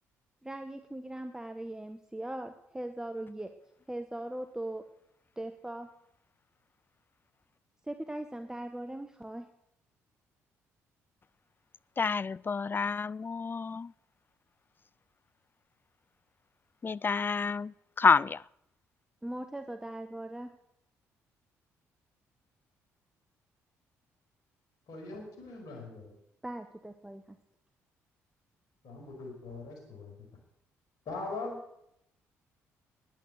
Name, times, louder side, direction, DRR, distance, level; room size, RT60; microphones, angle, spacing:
voice 1, 0.4-3.5 3.9-4.8 5.4-5.9 7.9-9.5 19.2-20.6 26.4-27.4, right 1 dB, 10° right, 1.1 m, -40 dB
voice 2, 12.0-13.9 16.8-18.4, left 5 dB, 30° left, 0.4 m, -28 dB
voice 3, 24.9-26.1 28.8-30.3 31.0-31.6, left 3 dB, 60° left, 5.2 m, -41 dB
10.5 x 8.9 x 8.1 m
hypercardioid pair, 50°, 7 cm